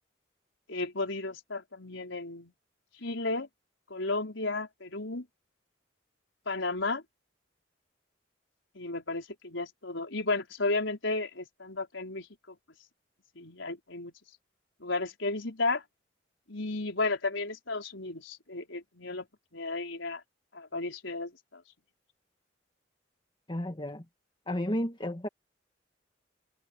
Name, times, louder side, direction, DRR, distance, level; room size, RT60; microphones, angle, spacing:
voice 1, 0.7-2.5 3.0-3.5 3.9-5.3 6.5-7.0 8.7-12.6 13.4-14.1 14.8-15.8 16.5-19.3 19.5-20.2 20.5-21.6, left 3 dB, 80° left, 4.7 m, -33 dB
voice 2, 23.5-24.0 24.5-25.3, left 1 dB, 25° left, 1.8 m, -32 dB
head